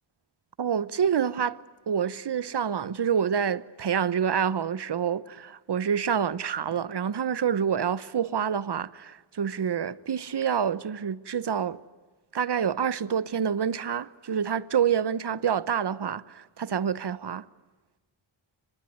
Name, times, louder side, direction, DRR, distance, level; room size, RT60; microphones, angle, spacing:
voice 1, 0.6-11.8 12.3-17.5, right 8 dB, 55° right, 1.0 m, -27 dB
24.5 x 21.0 x 9.6 m
cardioid pair, 55°, 48 cm